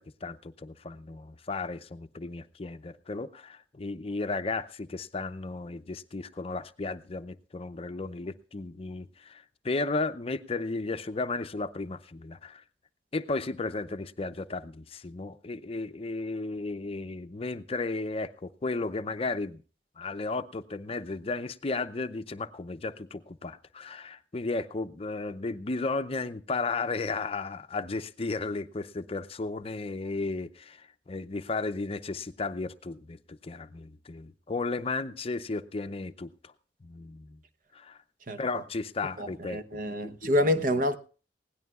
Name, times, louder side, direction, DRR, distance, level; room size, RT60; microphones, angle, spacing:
voice 1, 0.0-12.6 13.1-19.6 20.0-36.5 36.8-37.4 37.7-38.0 38.4-39.6 40.0-40.3, left 3 dB, 35° left, 0.6 m, -34 dB
voice 2, 39.2-41.0, left 1 dB, 50° right, 0.9 m, -27 dB
20.5 x 17.0 x 2.4 m
head